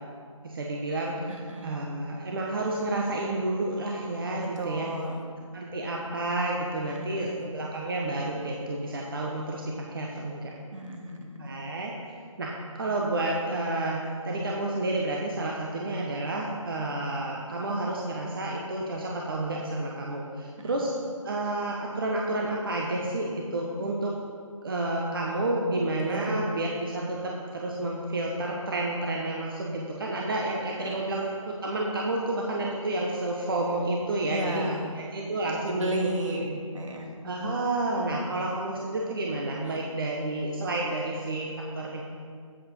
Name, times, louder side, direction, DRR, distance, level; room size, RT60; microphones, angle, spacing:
voice 1, 0.4-4.9 5.5-10.5 11.4-11.9 12.4-20.9 21.2-24.2 24.6-35.9 36.3-36.6 37.2-42.0, right 2 dB, 40° right, -2 dB, 1.1 m, -30 dB
voice 2, 1.3-1.9 4.4-5.2 6.9-7.4 10.7-11.5 20.6-20.8 26.0-26.3 30.8-31.0 34.3-34.9 35.7-37.1, right 1 dB, 65° right, 1 dB, 1.9 m, -34 dB
8.7 x 8.1 x 5.4 m, 2.1 s
figure-of-eight pair, 160°, 17 cm